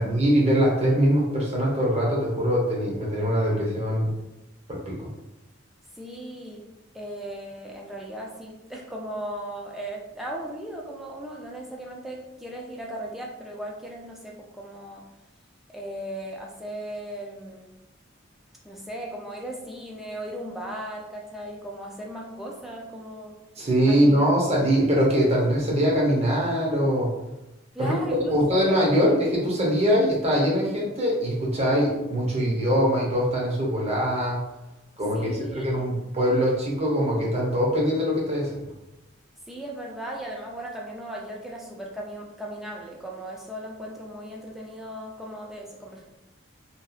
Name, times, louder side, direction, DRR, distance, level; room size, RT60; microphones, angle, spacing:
voice 1, 0.0-4.1 4.7-4.9 23.6-27.1 27.8-27.9 28.3-34.4 35.0-38.6, equal, 35° right, -4 dB, 0.7 m, -22 dB
voice 2, 6.0-6.7 6.9-15.0 15.7-17.8 18.6-23.4 23.9-24.3 27.7-28.4 28.8-29.1 35.1-35.9 39.5-46.0, right 1 dB, ahead, -2 dB, 0.4 m, -37 dB
2.8 x 2.4 x 2.4 m, 0.96 s
head